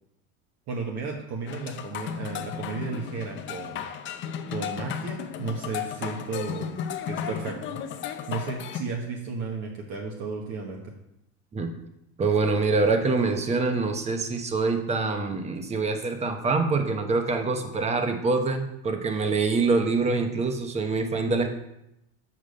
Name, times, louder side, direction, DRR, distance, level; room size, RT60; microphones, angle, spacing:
voice 1, 0.7-3.8 4.5-6.7 7.0-7.8 8.1-10.9, right 4 dB, 45° right, 0 dB, 1.3 m, -34 dB
sound 1, 1.5-8.8, left 8 dB, 30° left, 0.7 m, -34 dB
voice 2, 12.2-21.5, right 3 dB, 15° right, 6 dB, 1.0 m, -25 dB
7.4 x 4.9 x 6.5 m, 0.85 s
supercardioid pair, 140°, 37 cm